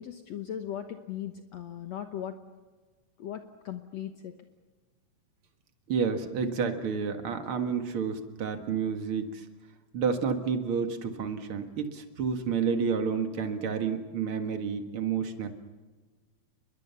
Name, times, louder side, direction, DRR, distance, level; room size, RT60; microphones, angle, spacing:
voice 1, 0.0-2.4 3.2-4.3, left 10 dB, 65° left, 6 dB, 2.1 m, -38 dB
voice 2, 5.9-9.5 9.9-15.5, right 6 dB, 50° right, 7 dB, 2.2 m, -30 dB
30.0 x 22.0 x 6.9 m, 1.4 s
omnidirectional pair, 3.7 m